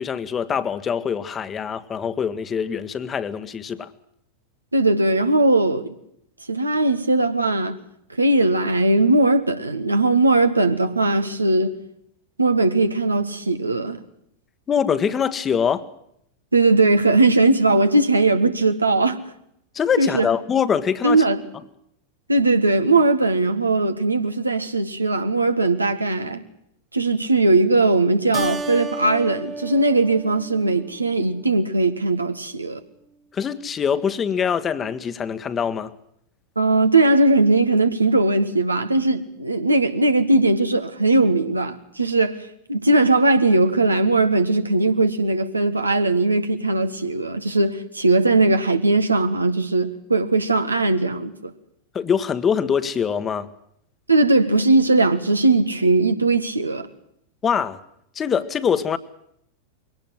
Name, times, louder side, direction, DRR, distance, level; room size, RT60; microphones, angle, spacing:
voice 1, 0.0-3.9 14.7-15.9 19.7-21.2 33.3-35.9 51.9-53.5 57.4-57.8 58.1-59.0, left 7 dB, 20° left, 1.4 m, -23 dB
voice 2, 4.7-5.9 6.5-7.8 8.2-11.7 12.4-14.0 16.5-19.2 20.0-20.3 21.0-21.4 22.3-26.4 26.9-32.8 36.6-42.4 42.7-51.5 54.1-56.9, right 2 dB, 80° right, 1.7 m, -19 dB
Keyboard (musical), 28.3-31.2, right 4 dB, 15° right, 1.2 m, -32 dB
22.5 x 18.5 x 7.7 m
figure-of-eight pair, 90°, 0 cm